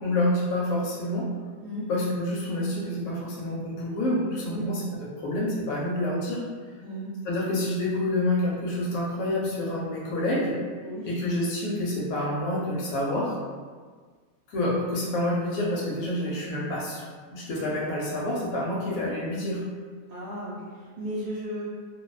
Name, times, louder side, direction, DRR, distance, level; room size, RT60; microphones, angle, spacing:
voice 1, 0.0-1.3 1.9-6.4 7.2-10.6 11.1-13.4 14.5-17.0 17.3-19.6, left 1 dB, 70° left, -4 dB, 0.9 m, -28 dB
voice 2, 10.8-11.1 20.1-21.7, equal, 80° right, -10 dB, 1.1 m, -35 dB
2.5 x 2.1 x 2.3 m, 1.5 s
omnidirectional pair, 1.6 m